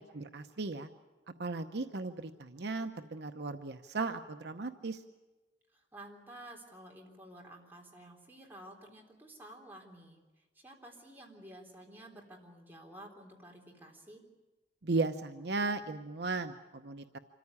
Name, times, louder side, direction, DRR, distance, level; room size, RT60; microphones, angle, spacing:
voice 1, 0.1-0.9 1.4-5.0 14.8-17.2, right 3 dB, 65° right, 7 dB, 0.8 m, -36 dB
voice 2, 5.7-10.2 10.6-14.2, right 1 dB, 10° right, -1 dB, 3.6 m, -52 dB
26.0 x 14.5 x 9.7 m, 1.2 s
head